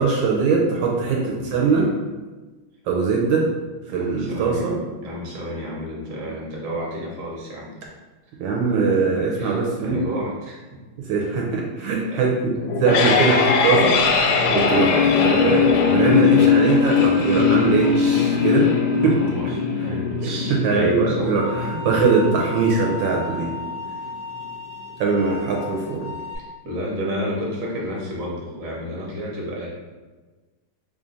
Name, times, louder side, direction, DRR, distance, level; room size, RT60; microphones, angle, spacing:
voice 1, 0.0-1.9 2.8-3.5 3.9-4.7 8.4-10.0 11.0-12.5 12.8-18.7 19.0-19.2 20.2-23.5 25.0-26.1, right 4 dB, 75° right, -2 dB, 1.2 m, -21 dB
voice 2, 1.0-1.9 4.0-7.7 9.4-10.6 11.9-12.2 19.0-19.4 19.8-21.7 26.6-29.7, equal, 50° right, -4 dB, 1.1 m, -31 dB
sound 1, 12.6-23.6, left 6 dB, 85° left, 1.4 m, -20 dB
sound 2, 21.3-26.3, left 3 dB, 30° right, 0.9 m, -35 dB
3.3 x 2.5 x 3.9 m, 1.3 s
omnidirectional pair, 2.3 m